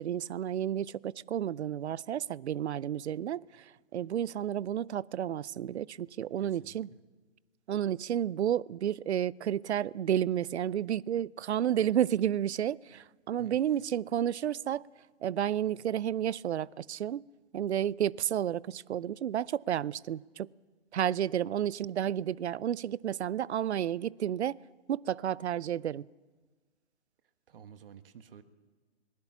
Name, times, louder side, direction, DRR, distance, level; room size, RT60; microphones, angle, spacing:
voice 1, 0.0-6.9 7.7-14.9 15.2-17.2 17.5-20.5 20.9-24.6 24.9-26.1, right 10 dB, 70° right, 0.6 m, -31 dB
voice 2, 6.4-7.0 13.4-13.6 27.5-28.4, right 7 dB, 55° right, 1.4 m, -51 dB
21.0 x 20.0 x 7.1 m
hypercardioid pair, 145°, 34 cm